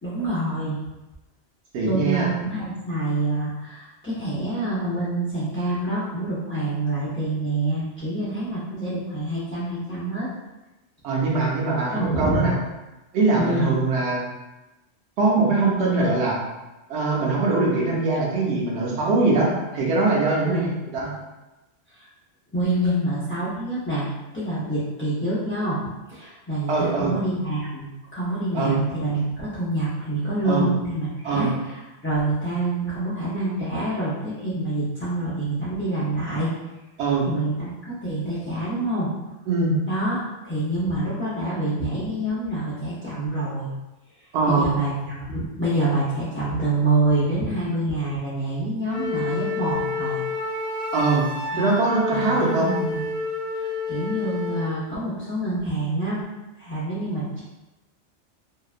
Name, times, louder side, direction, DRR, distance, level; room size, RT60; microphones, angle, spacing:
voice 1, 0.0-0.8 1.8-10.3 11.9-12.4 13.4-13.8 20.5-20.7 21.9-22.1 22.5-24.1 24.3-25.8 26.1-36.5 37.2-37.7 38.0-39.1 39.9-43.7 44.5-50.2 51.5-51.8 52.1-53.1 53.5-56.2 56.6-57.4, right 2 dB, 20° left, -12 dB, 0.3 m, -26 dB
voice 2, 1.7-2.3 11.0-12.5 13.1-14.2 15.2-16.4 16.9-20.7 20.9-21.1 26.7-27.2 28.5-28.8 30.5-30.7 31.2-31.5 37.0-37.3 39.5-39.8 44.3-44.7 50.9-51.2 51.5-52.7, right 3 dB, 65° right, -4 dB, 0.9 m, -22 dB
Wind instrument woodwind instrument, 48.9-54.7, left 3 dB, 65° left, 0.8 m, -29 dB
2.8 x 2.2 x 2.4 m, 1.0 s
omnidirectional pair, 1.2 m